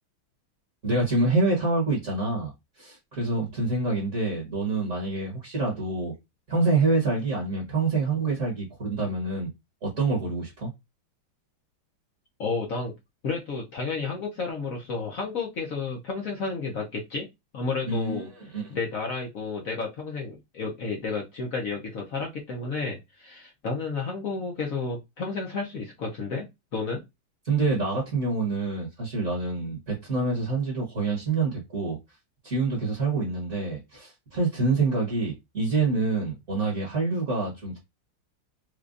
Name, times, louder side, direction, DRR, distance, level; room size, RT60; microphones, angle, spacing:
voice 1, 0.8-6.1 6.5-9.5 9.8-10.7 17.9-18.7 27.4-32.0 32.4-37.8, right 3 dB, 40° right, 1.4 m, -26 dB
voice 2, 12.4-12.9 13.2-17.3 17.5-18.3 18.7-26.5 26.7-27.0, left 4 dB, 60° left, 0.9 m, -31 dB
4.9 x 2.3 x 2.5 m
omnidirectional pair, 2.3 m